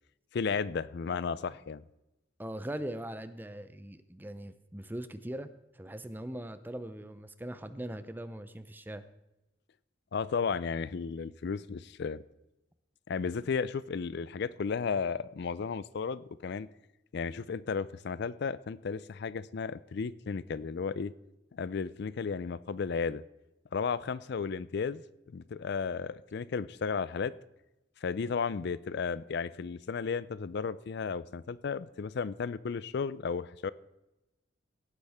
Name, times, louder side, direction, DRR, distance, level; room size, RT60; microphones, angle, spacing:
voice 1, 0.3-1.8 10.1-12.2 13.1-16.7 17.1-21.1 21.5-23.2 23.7-25.0 25.3-27.3 28.0-33.7, left 5 dB, 55° left, 17 dB, 0.4 m, -34 dB
voice 2, 2.4-5.5 5.7-9.0, right 1 dB, 10° right, 12 dB, 0.6 m, -40 dB
17.5 x 9.8 x 3.5 m, 0.93 s
head